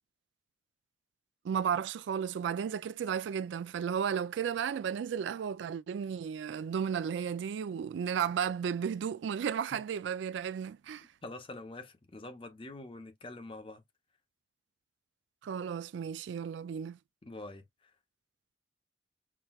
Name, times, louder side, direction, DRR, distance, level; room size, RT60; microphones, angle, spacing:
voice 1, 1.4-11.1 15.4-17.0, right 7 dB, 80° right, 0.3 m, -34 dB
voice 2, 11.2-13.8 17.2-17.9, left 2 dB, 30° left, 0.7 m, -45 dB
5.9 x 2.3 x 2.3 m
head